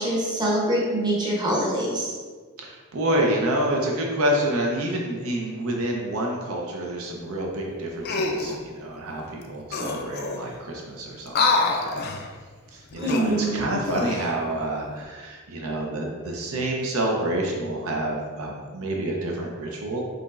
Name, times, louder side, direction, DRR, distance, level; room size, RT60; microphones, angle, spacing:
voice 1, 0.0-2.1 13.0-13.6, right 1 dB, 20° right, -4 dB, 0.8 m, -24 dB
voice 2, 2.6-12.1 12.7-20.0, right 1 dB, 70° right, -1 dB, 0.6 m, -28 dB
sound 1, 8.0-8.6 9.4-9.5 9.7-10.6 11.3-12.3 12.9-14.3 14.8-15.0, left 3 dB, 45° left, 0.4 m, -27 dB
4.9 x 3.0 x 2.4 m, 1.5 s
head